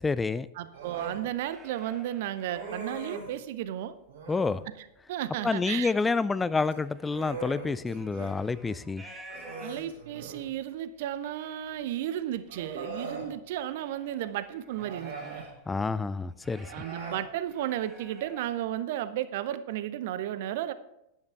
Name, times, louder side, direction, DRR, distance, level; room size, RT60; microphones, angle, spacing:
voice 1, 0.0-0.5 4.3-4.6 5.4-9.0 15.7-16.7, left 4 dB, 10° left, 17 dB, 0.4 m, -28 dB
voice 2, 0.6-3.9 5.1-5.9 9.6-15.4 16.7-20.7, right 12 dB, 50° right, 14 dB, 0.7 m, -34 dB
Human voice, 0.7-1.2 2.5-3.4 4.1-4.6 6.6-8.3 8.7-8.8 9.3-10.5 11.7-11.8 12.5-13.3 14.7-15.5 16.6-17.2, right 4 dB, 70° right, 4.1 m, -41 dB
sound 1, 1.2-3.7 4.2-4.9 5.3-10.1 10.7-10.8 11.0-11.7 12.2-15.7 16.0-18.6, right 1 dB, 10° right, 2.2 m, -53 dB
11.5 x 10.5 x 3.6 m, 0.85 s
figure-of-eight pair, 90°, 0 cm